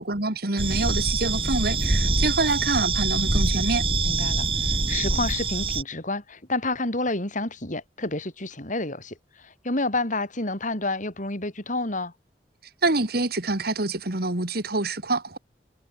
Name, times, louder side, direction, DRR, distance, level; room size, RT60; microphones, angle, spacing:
voice 1, 0.0-3.9 12.8-15.4, right 2 dB, 60° right, 2.6 m, -26 dB
sound 1, 0.6-5.8, right 3 dB, 30° right, 2.0 m, -24 dB
voice 2, 4.0-12.1, left 2 dB, 45° left, 6.5 m, -29 dB
head